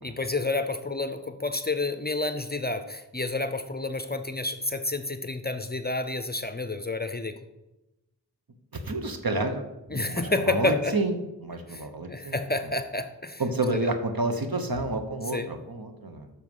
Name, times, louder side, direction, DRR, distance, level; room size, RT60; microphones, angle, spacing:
voice 1, 0.0-7.4 9.9-10.9 11.7-13.4 13.7-13.9 15.3-15.5, left 2 dB, 25° left, 10 dB, 0.6 m, -29 dB
voice 2, 8.8-11.1 11.4-12.3 13.4-16.4, right 2 dB, 65° right, 6 dB, 1.2 m, -30 dB
8.0 x 6.4 x 5.5 m, 0.96 s
wide cardioid pair, 50°, 39 cm